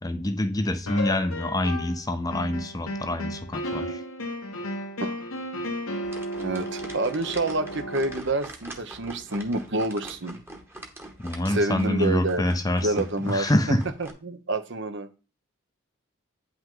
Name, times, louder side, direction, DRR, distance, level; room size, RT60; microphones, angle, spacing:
voice 1, 0.0-4.0 11.2-12.9 13.2-13.8, left 1 dB, 15° left, 0.6 m, -26 dB
sound 1, 0.9-2.0 2.3-8.2, left 1 dB, 85° left, 1.3 m, -34 dB
sound 2, 6.0-14.1, right 1 dB, 10° right, 1.1 m, -43 dB
voice 2, 6.4-10.4 11.5-12.5 12.8-13.5 14.0-15.1, right 2 dB, 60° right, 0.9 m, -28 dB
8.9 x 5.8 x 3.8 m
head